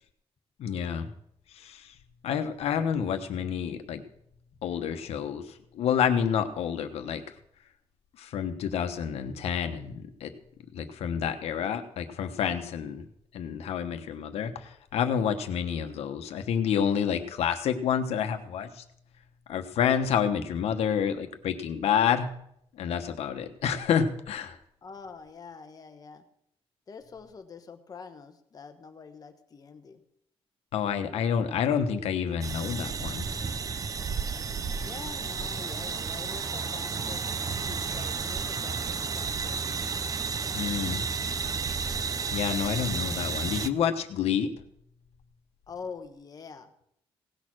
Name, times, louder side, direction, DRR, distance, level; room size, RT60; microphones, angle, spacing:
voice 1, 0.6-1.1 1.5-1.9 2.2-4.0 4.6-7.2 8.2-10.3 10.7-13.0 13.3-18.8 19.5-22.3 22.7-24.6 30.7-33.3 40.5-41.1 42.3-44.5, left 8 dB, 90° left, 7 dB, 1.1 m, -28 dB
voice 2, 24.8-26.2 26.9-30.0 34.8-39.9 45.7-46.7, left 5 dB, 40° left, 7 dB, 1.1 m, -45 dB
sound 1, 32.4-43.7, right 5 dB, 35° right, 0.6 m, -32 dB
17.5 x 6.6 x 6.2 m, 0.72 s
cardioid pair, 145°, 10 cm